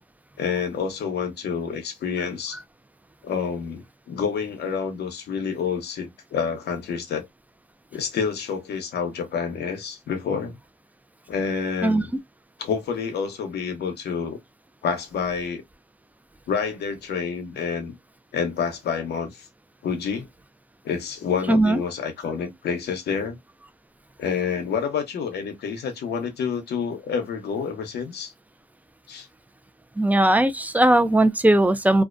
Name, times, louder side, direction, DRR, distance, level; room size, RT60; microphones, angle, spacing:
voice 1, 0.4-2.6 3.2-7.3 7.9-10.5 11.3-12.1 12.6-14.4 14.8-15.6 16.5-18.0 18.3-19.5 19.8-20.3 20.8-23.4 24.2-28.3 29.1-29.3, left 6 dB, 85° left, 0.7 m, -28 dB
voice 2, 21.5-21.8 30.0-32.0, right 1 dB, 10° right, 0.4 m, -18 dB
2.4 x 2.1 x 2.4 m
cardioid pair, 70°, 17 cm